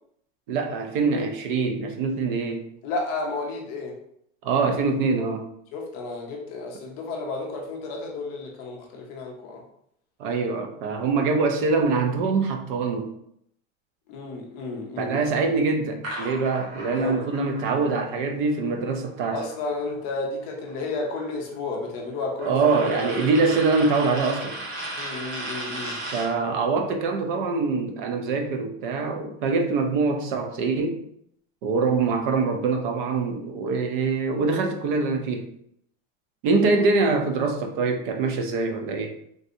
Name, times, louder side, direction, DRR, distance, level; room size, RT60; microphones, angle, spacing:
voice 1, 0.5-2.7 4.4-5.4 10.2-13.1 15.0-19.4 22.4-24.6 26.1-31.0 31.6-35.5 36.4-39.1, right 4 dB, 45° right, 0.4 m, -24 dB
voice 2, 2.8-3.9 5.7-9.6 14.1-15.2 16.9-17.3 19.3-22.7 23.0-23.5 25.0-26.0, left 3 dB, 30° left, 0.5 m, -32 dB
sound 1, 16.0-20.1 20.4-26.4, right 1 dB, 85° right, 1.2 m, -37 dB
3.3 x 2.7 x 2.5 m
supercardioid pair, 170°, 39 cm